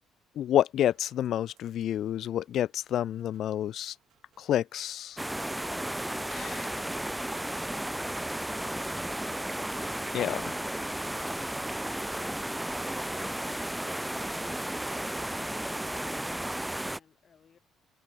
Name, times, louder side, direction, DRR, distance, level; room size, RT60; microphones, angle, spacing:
voice 1, 0.4-3.9 4.4-5.2 6.3-6.6 10.1-10.4, left 11 dB, 60° left, 0.3 m, -29 dB
sound 1, 0.9-9.0, right 13 dB, 75° right, 6.0 m, -71 dB
sound 2, 5.2-17.0, right 1 dB, 5° right, 0.6 m, -34 dB
voice 2, 15.2-17.6, left 7 dB, 40° left, 2.0 m, -60 dB
cardioid pair, 135°, 0 cm